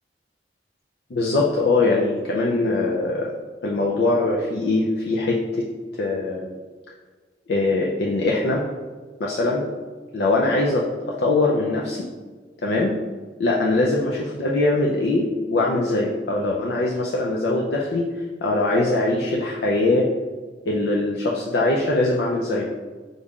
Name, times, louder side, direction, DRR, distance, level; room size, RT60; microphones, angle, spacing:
voice 1, 1.1-3.3 3.6-5.7 6.0-6.6 7.5-8.6 9.2-9.6 10.1-12.1 12.6-12.9 13.4-18.1 18.4-20.1 20.7-22.7, left 2 dB, 65° left, -2 dB, 0.5 m, -22 dB
5.3 x 2.4 x 3.6 m, 1.4 s
head